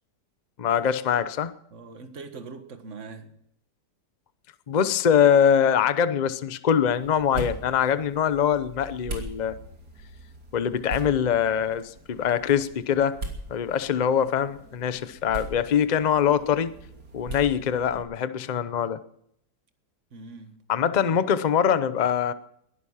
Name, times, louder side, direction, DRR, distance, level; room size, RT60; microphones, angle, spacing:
voice 1, 0.6-1.5 4.7-9.6 10.5-13.2 13.5-16.8 17.1-19.0 20.7-22.3, left 8 dB, 40° left, 12 dB, 0.6 m, -23 dB
voice 2, 1.7-3.3 20.1-20.6, right 4 dB, 45° right, 7 dB, 1.8 m, -42 dB
sound 1, 6.9-18.0, right 1 dB, 60° right, 3.4 m, -40 dB
21.0 x 11.5 x 5.6 m, 0.71 s
omnidirectional pair, 1.9 m